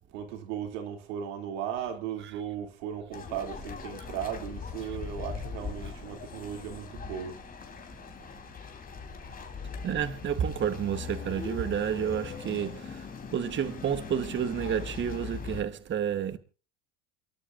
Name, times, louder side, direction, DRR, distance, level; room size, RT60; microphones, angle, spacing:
voice 1, 0.1-7.4, right 9 dB, 85° right, 2.9 m, -36 dB
sound 1, 3.1-15.6, left 5 dB, 25° left, 3.5 m, -40 dB
voice 2, 9.8-16.4, right 9 dB, 30° right, 1.2 m, -30 dB
29.0 x 12.5 x 2.6 m
supercardioid pair, 105°, 36 cm